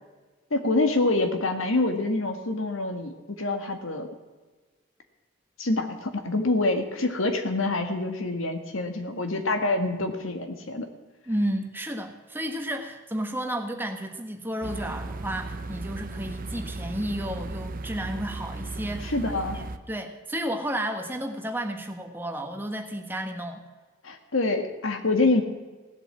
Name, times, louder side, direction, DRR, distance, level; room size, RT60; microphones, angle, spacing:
voice 1, 0.5-4.1 5.6-10.9 19.1-19.6 24.0-25.4, left 2 dB, 85° left, 6 dB, 1.8 m, -26 dB
voice 2, 11.3-19.2 19.5-23.6, right 1 dB, 10° right, 4 dB, 1.4 m, -32 dB
sound 1, 14.6-19.8, right 2 dB, 45° right, 0.6 m, -36 dB
16.5 x 8.1 x 7.3 m, 1.3 s
head